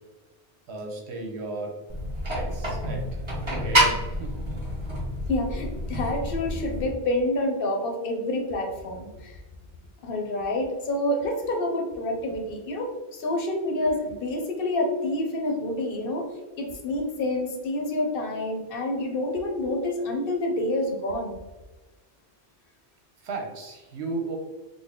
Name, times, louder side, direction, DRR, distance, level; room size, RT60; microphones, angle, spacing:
voice 1, 0.7-1.7 2.3-4.3 23.2-24.4, right 2 dB, 80° right, 1 dB, 1.0 m, -35 dB
sound 1, 1.9-6.9, equal, 30° right, 1.0 m, -28 dB
voice 2, 5.3-9.4 10.0-16.3 16.6-21.3, left 1 dB, 60° left, 3 dB, 0.8 m, -28 dB
3.8 x 2.0 x 3.6 m, 1.2 s
omnidirectional pair, 1.1 m